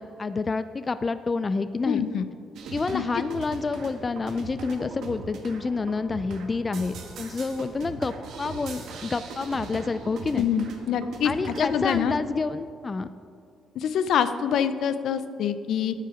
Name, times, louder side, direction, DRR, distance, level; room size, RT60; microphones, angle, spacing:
voice 1, 0.0-2.1 2.7-10.5 11.2-13.1, left 4 dB, 30° left, 12 dB, 0.4 m, -28 dB
voice 2, 1.8-2.2 2.9-3.0 10.3-11.3 11.6-12.2 13.8-15.9, left 8 dB, 75° left, 11 dB, 0.6 m, -25 dB
sound 1, 2.5-12.0, right 4 dB, 80° right, 1.5 m, -40 dB
13.0 x 9.0 x 4.9 m, 2.5 s
cardioid pair, 90°, 0 cm